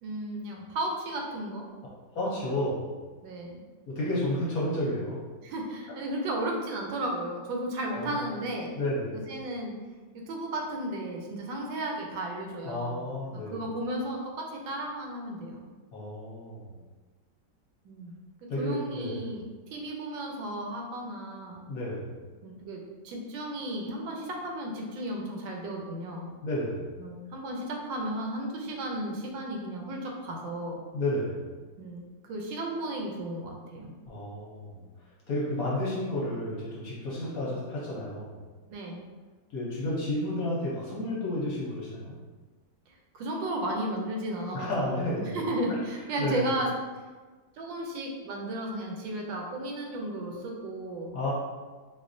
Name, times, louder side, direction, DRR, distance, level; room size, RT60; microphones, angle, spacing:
voice 1, 0.0-1.6 3.2-3.6 5.4-8.8 9.3-9.8 10.1-13.0 13.3-15.6 17.8-19.4 19.7-21.6 22.4-26.3 27.0-30.8 31.8-33.9 38.7-39.0 43.1-46.7 47.6-51.3, right 1 dB, 80° right, 0 dB, 1.3 m, -34 dB
voice 2, 2.1-2.9 3.9-5.2 7.9-8.2 8.8-9.2 12.6-13.6 15.9-16.8 18.5-19.2 21.7-22.1 26.4-26.8 30.9-31.4 34.1-34.8 35.3-38.4 39.5-42.1 44.5-45.4 46.2-46.5 51.1-51.3, left 1 dB, 60° left, -6 dB, 1.0 m, -31 dB
4.1 x 2.5 x 2.5 m, 1.4 s
omnidirectional pair, 2.0 m